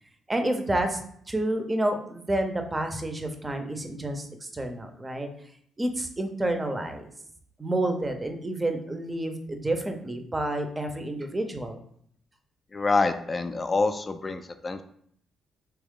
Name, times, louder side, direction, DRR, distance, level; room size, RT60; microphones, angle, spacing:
voice 1, 0.3-1.0 1.3-5.3 5.8-7.1 7.6-11.8, right 1 dB, 20° right, 6 dB, 0.6 m, -29 dB
voice 2, 12.7-14.8, left 3 dB, 30° left, 9 dB, 0.4 m, -26 dB
3.5 x 3.0 x 3.6 m, 0.65 s
cardioid pair, 90°, 0 cm